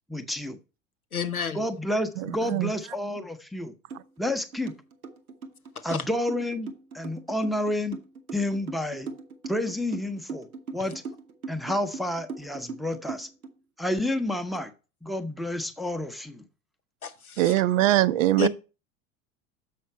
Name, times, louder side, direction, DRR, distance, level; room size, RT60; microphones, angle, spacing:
voice 1, 0.1-0.6 1.5-3.7 4.2-4.7 5.8-8.0 8.3-9.1 9.5-10.5 10.7-11.0 11.5-13.3 13.8-14.7 15.0-16.5, left 1 dB, ahead, 0.6 m, -30 dB
voice 2, 1.1-1.6 5.9-6.0 17.0-17.4 18.4-18.5, left 7 dB, 90° left, 0.9 m, -29 dB
voice 3, 2.2-2.7 17.4-18.5, right 15 dB, 65° right, 0.6 m, -22 dB
sound 1, 3.9-4.0 4.3-13.5, right 4 dB, 85° right, 1.0 m, -39 dB
7.1 x 5.9 x 4.3 m
figure-of-eight pair, 75°, 42 cm